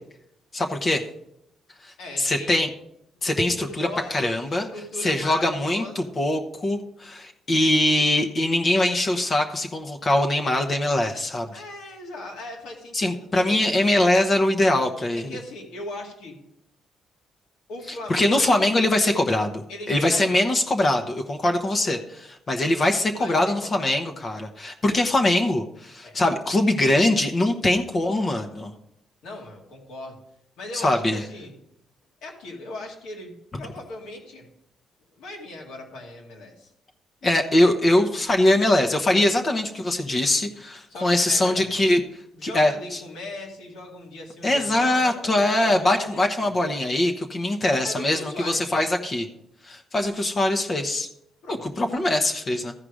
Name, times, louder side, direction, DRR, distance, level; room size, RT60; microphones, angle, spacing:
voice 1, 0.5-1.0 1.8-2.7 3.2-4.7 5.0-11.6 12.9-15.4 17.9-19.6 19.9-28.7 30.7-31.2 37.2-42.0 42.4-43.0 44.4-49.3 49.7-51.1 51.5-52.7, left 1 dB, 35° left, 4 dB, 0.9 m, -22 dB
voice 2, 2.0-2.6 3.3-6.1 11.5-13.7 15.2-16.4 17.7-18.5 18.9-19.3 19.7-20.3 23.2-23.4 23.6-23.9 26.0-26.2 26.6-26.7 29.2-30.2 30.6-31.5 32.2-34.5 35.1-36.7 40.9-41.7 42.3-46.5 47.8-48.8 51.4-51.6, left 1 dB, 90° left, -1 dB, 2.4 m, -38 dB
14.0 x 4.9 x 4.9 m, 0.79 s
cardioid pair, 90°, 0 cm